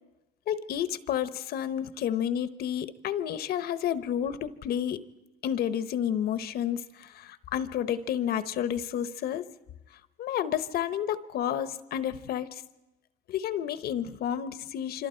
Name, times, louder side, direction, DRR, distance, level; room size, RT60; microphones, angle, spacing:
voice 1, 0.5-5.1 5.4-9.5 10.2-12.6 13.3-15.1, left 10 dB, 70° left, 13 dB, 0.9 m, -30 dB
26.0 x 25.5 x 4.5 m, 1.0 s
cardioid pair, 110°, 17 cm